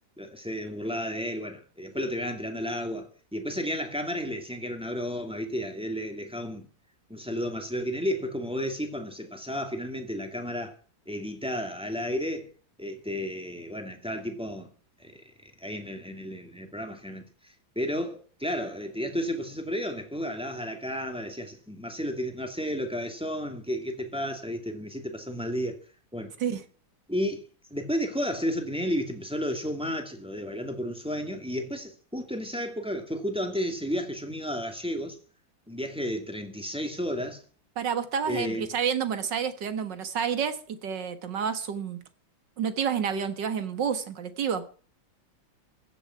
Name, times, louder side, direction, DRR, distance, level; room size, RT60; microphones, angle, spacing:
voice 1, 0.2-6.7 7.1-10.8 11.1-12.5 12.8-14.7 15.0-25.8 26.1-26.3 27.1-27.4 27.7-35.2 35.7-37.4 38.3-38.7, equal, 5° right, 2.4 m, -32 dB
voice 2, 37.8-42.0 42.6-44.7, right 7 dB, 65° right, 2.1 m, -29 dB
15.5 x 7.2 x 9.4 m
omnidirectional pair, 2.1 m